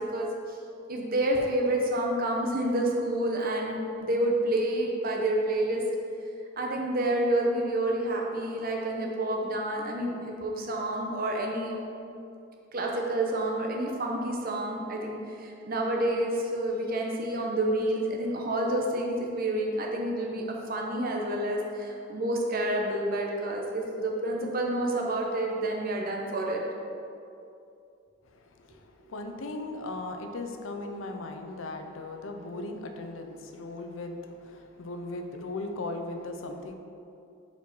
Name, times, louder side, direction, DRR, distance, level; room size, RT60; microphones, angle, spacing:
voice 1, 0.9-5.8 6.6-11.8 12.7-20.4 20.7-26.6, right 1 dB, 45° right, 0 dB, 0.8 m, -29 dB
voice 2, 28.3-36.8, left 2 dB, 85° left, 5 dB, 0.6 m, -38 dB
5.0 x 4.5 x 5.3 m, 2.6 s
head